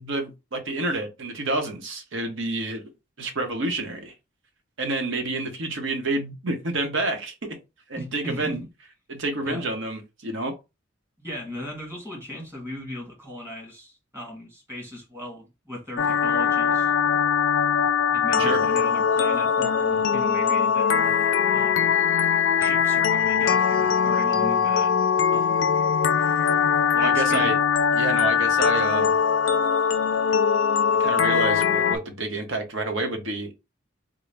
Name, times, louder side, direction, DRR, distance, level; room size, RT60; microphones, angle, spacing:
voice 1, 0.0-2.8 3.2-4.1 4.8-7.6 7.9-8.6 9.1-10.5 18.4-18.6 27.0-27.6 27.9-29.2 30.9-33.5, right 2 dB, 75° right, 0.9 m, -28 dB
voice 2, 7.9-8.7 9.4-9.6 11.2-17.0 18.1-21.1 21.4-21.9 22.6-25.0 25.3-25.6 26.9-27.5, left 1 dB, 15° right, 1.5 m, -37 dB
sound 1, 16.0-32.0, left 7 dB, 70° left, 0.4 m, -21 dB
3.7 x 2.0 x 3.3 m
head